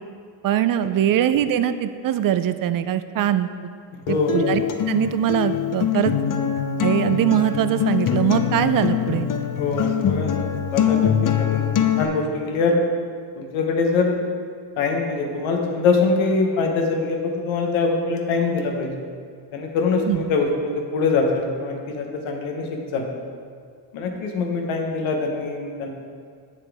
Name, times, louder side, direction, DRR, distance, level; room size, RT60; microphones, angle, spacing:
voice 1, 0.4-3.7 4.1-4.6 4.9-6.2 6.8-9.3 20.1-20.2, right 11 dB, 50° right, 12 dB, 0.4 m, -22 dB
voice 2, 3.9-4.4 9.6-10.4 10.7-11.6 12.0-12.8 13.4-14.2 14.8-18.9 19.5-23.1 23.9-25.9, left 4 dB, 85° left, 2 dB, 1.1 m, -23 dB
Acoustic guitar, 4.1-12.1, left 9 dB, 45° left, 0.6 m, -23 dB
7.1 x 6.8 x 3.5 m, 2.1 s
cardioid pair, 85°, 46 cm